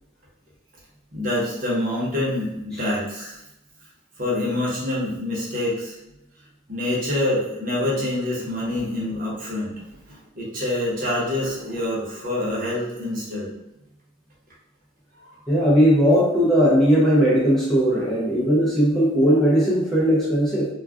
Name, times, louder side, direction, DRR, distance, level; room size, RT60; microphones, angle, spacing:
voice 1, 1.1-3.3 4.2-5.9 6.7-9.7 10.1-13.5 15.1-15.4 17.9-18.0 19.2-19.4, left 1 dB, 40° right, -6 dB, 0.9 m, -26 dB
voice 2, 15.5-20.7, equal, ahead, -8 dB, 0.5 m, -18 dB
2.3 x 2.2 x 3.5 m, 0.86 s
head